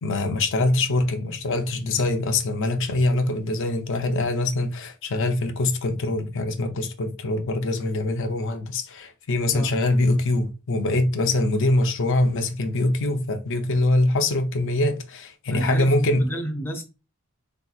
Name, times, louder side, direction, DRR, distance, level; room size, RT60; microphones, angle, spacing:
voice 1, 0.0-16.3, left 2 dB, 60° left, 0.5 m, -23 dB
voice 2, 15.5-16.8, right 1 dB, 10° left, 0.4 m, -29 dB
3.8 x 2.8 x 2.3 m
head